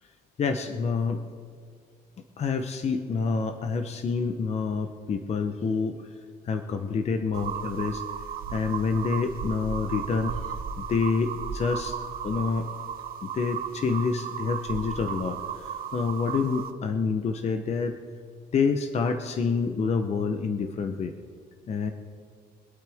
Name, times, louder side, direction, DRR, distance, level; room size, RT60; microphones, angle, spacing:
voice 1, 0.4-1.2 2.4-6.1 6.4-8.0 8.5-12.0 12.2-12.7 13.2-18.0 18.5-21.1 21.7-21.9, left 5 dB, 40° left, 7 dB, 0.9 m, -27 dB
sound 1, 7.3-16.7, right 7 dB, 60° right, 1.1 m, -35 dB
24.0 x 8.9 x 3.5 m, 2.1 s
cardioid pair, 110°, 17 cm